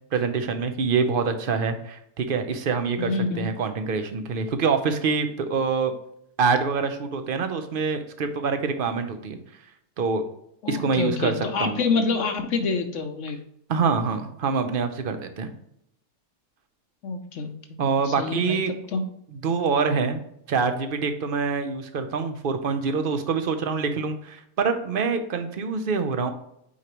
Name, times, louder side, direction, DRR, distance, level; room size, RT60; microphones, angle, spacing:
voice 1, 0.1-5.9 6.4-9.4 10.0-10.2 10.7-11.8 13.7-15.5 17.8-18.7 19.3-20.2 20.5-26.3, right 5 dB, 55° right, 8 dB, 0.6 m, -25 dB
voice 2, 3.0-3.5 10.6-13.4 17.0-17.8 18.0-18.6 18.9-19.0, left 4 dB, 60° left, 6 dB, 1.0 m, -27 dB
8.4 x 4.7 x 3.0 m, 0.75 s
omnidirectional pair, 1.7 m